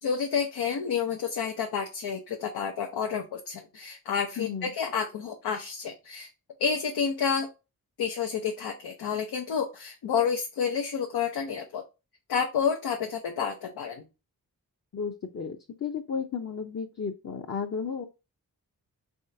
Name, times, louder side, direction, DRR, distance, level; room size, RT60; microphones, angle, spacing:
voice 1, 0.0-6.3 6.6-7.5 8.0-11.8 12.3-14.0, left 6 dB, 90° left, 2 dB, 0.7 m, -29 dB
voice 2, 4.4-4.7 14.9-18.0, left 6 dB, 40° left, 3 dB, 0.6 m, -33 dB
3.6 x 3.4 x 2.7 m, 0.27 s
cardioid pair, 50°, 38 cm